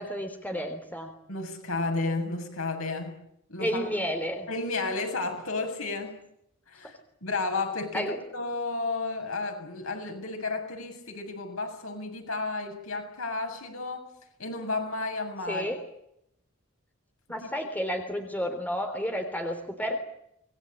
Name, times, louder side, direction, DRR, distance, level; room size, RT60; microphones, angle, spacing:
voice 1, 0.0-1.1 3.6-4.5 7.9-8.2 15.5-15.8 17.3-20.0, equal, 10° left, 5 dB, 3.5 m, -31 dB
voice 2, 1.3-3.2 3.5-3.9 4.5-6.2 6.7-6.9 7.2-14.1 14.4-15.7 17.4-17.5, left 3 dB, 80° left, 3 dB, 7.4 m, -32 dB
25.5 x 21.0 x 8.8 m, 0.76 s
head